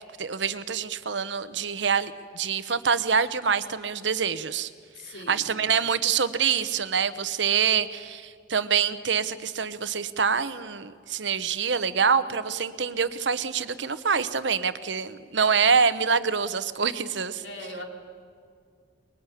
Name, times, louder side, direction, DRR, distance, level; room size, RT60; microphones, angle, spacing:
voice 1, 0.0-4.7 5.3-17.4, right 6 dB, 70° right, 13 dB, 1.0 m, -26 dB
voice 2, 4.9-5.5 17.4-17.8, left 1 dB, 75° left, 2 dB, 4.1 m, -39 dB
23.5 x 21.0 x 10.0 m, 2.2 s
head